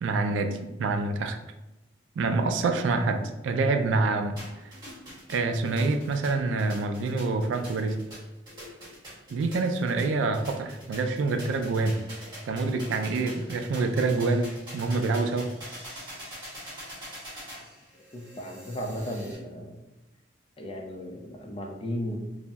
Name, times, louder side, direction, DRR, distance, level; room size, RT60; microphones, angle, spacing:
voice 1, 0.0-1.4 2.2-4.3 5.3-8.0 9.3-12.0 12.5-15.5, right 3 dB, 85° right, 6 dB, 0.3 m, -26 dB
sound 1, 4.4-19.4, equal, 25° right, 1.4 m, -44 dB
voice 2, 18.1-19.8 20.6-22.2, equal, 30° left, 2 dB, 0.4 m, -35 dB
2.6 x 2.0 x 3.4 m, 0.98 s
head